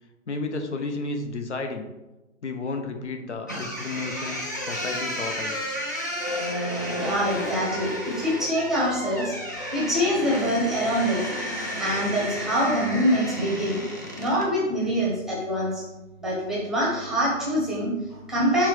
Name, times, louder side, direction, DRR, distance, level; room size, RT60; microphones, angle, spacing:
voice 1, 0.3-1.9 2.4-5.7, left 3 dB, 60° left, 6 dB, 0.9 m, -32 dB
sound 1, 3.5-14.5, equal, 15° left, 0.4 m, -32 dB
voice 2, 7.0-9.3 9.7-11.3 11.8-13.8 14.2-15.8 16.2-18.7, equal, ahead, -6 dB, 0.9 m, -25 dB
5.8 x 3.4 x 4.8 m, 1.1 s
figure-of-eight pair, 130°, 38 cm